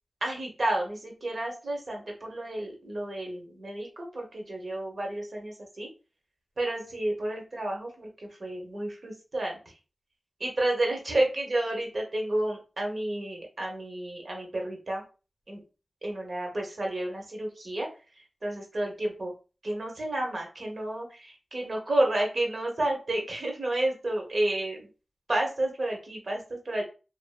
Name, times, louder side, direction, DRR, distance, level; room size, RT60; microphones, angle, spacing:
voice 1, 0.2-5.9 6.6-9.6 10.4-15.0 15.5-15.6 16.0-17.9 18.4-19.3 19.6-24.9 25.3-26.8, right 1 dB, 55° right, 0 dB, 0.9 m, -31 dB
2.6 x 2.6 x 2.2 m, 0.33 s
wide cardioid pair, 60°, 0 cm